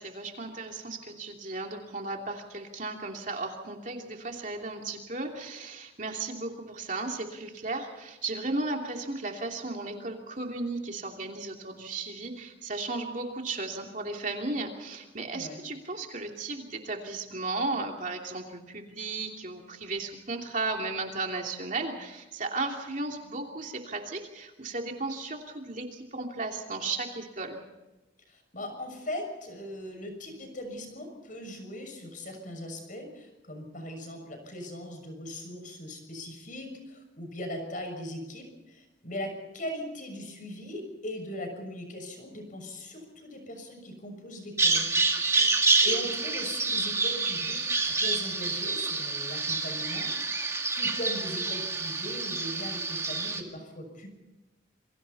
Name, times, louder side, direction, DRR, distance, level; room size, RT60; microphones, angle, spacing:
voice 1, 0.0-27.6 45.0-45.6, right 3 dB, 40° right, 2 dB, 2.9 m, -35 dB
voice 2, 28.3-44.9 45.4-54.1, left 1 dB, 40° left, 5 dB, 6.4 m, -39 dB
Bird vocalization bird call bird song, 44.6-53.4, right 3 dB, 15° right, 1.9 m, -28 dB
28.5 x 23.0 x 4.2 m, 1.0 s
head